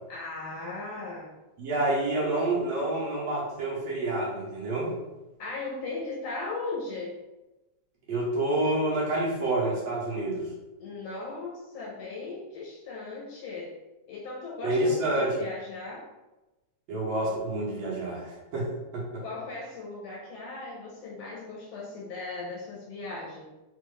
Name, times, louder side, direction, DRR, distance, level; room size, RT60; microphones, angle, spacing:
voice 1, 0.1-1.3 5.4-7.2 10.8-13.8 14.1-16.0 19.2-23.5, left 3 dB, 70° left, -4 dB, 1.7 m, -37 dB
voice 2, 1.6-4.9 8.1-10.4 14.6-15.4 16.9-19.2, right 1 dB, 70° right, -4 dB, 1.8 m, -28 dB
4.8 x 2.6 x 3.0 m, 1.0 s
omnidirectional pair, 3.4 m